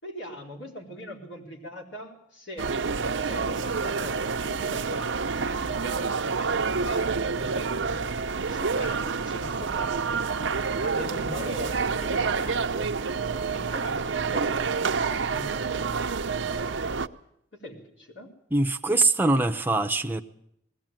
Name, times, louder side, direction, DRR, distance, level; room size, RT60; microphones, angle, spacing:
voice 1, 0.0-2.8 3.2-7.8 8.3-10.2 10.8-13.0 13.5-16.1 17.5-18.3, equal, 80° left, 0 dB, 4.3 m, -41 dB
sound 1, 2.6-17.1, right 5 dB, 80° right, 0.7 m, -28 dB
voice 2, 18.5-20.2, right 2 dB, 10° right, 5 dB, 0.7 m, -23 dB
20.5 x 16.0 x 9.0 m, 0.75 s
head